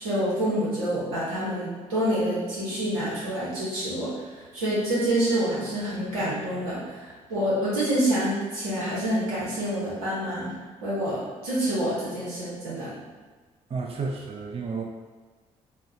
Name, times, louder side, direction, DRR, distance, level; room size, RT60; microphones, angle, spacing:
voice 1, 0.0-4.1 4.5-10.5 10.8-12.9, right 1 dB, 85° right, -8 dB, 1.2 m, -27 dB
voice 2, 13.7-14.8, right 4 dB, 35° right, 1 dB, 0.5 m, -31 dB
4.2 x 2.3 x 2.7 m, 1.4 s
hypercardioid pair, 50°, 17 cm